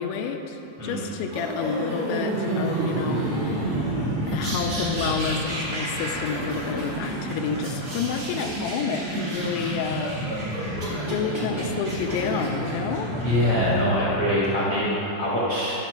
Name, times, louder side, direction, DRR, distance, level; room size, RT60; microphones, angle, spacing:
voice 1, 0.0-3.9 4.2-10.2 10.9-13.1, left 6 dB, 85° left, 3 dB, 2.8 m, -30 dB
sound 1, 1.3-14.0, right 1 dB, 55° right, 1.0 m, -29 dB
voice 2, 13.2-15.8, left 1 dB, 55° left, -8 dB, 1.6 m, -23 dB
13.0 x 5.9 x 6.2 m, 3.0 s
omnidirectional pair, 5.5 m